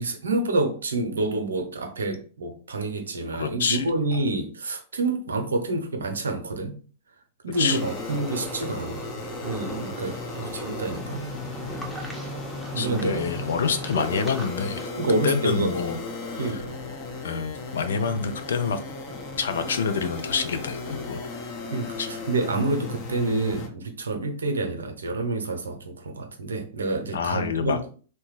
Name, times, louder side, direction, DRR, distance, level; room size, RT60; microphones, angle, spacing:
voice 1, 0.0-6.8 7.4-9.2 9.4-11.2 12.7-13.2 15.0-15.7 16.4-16.8 21.7-27.8, right 2 dB, 80° right, 5 dB, 0.6 m, -28 dB
voice 2, 3.3-4.2 7.6-7.9 10.4-10.5 12.8-14.9 15.2-16.0 16.3-16.6 17.2-18.8 19.4-21.2 22.0-22.1 27.1-27.8, left 6 dB, 75° left, 9 dB, 0.4 m, -27 dB
sound 1, 7.5-14.9, right 1 dB, 10° left, 0.8 m, -39 dB
sound 2, 7.7-23.7, left 3 dB, 45° left, 0.8 m, -36 dB
2.9 x 2.1 x 3.1 m, 0.41 s
hypercardioid pair, 100°, 0 cm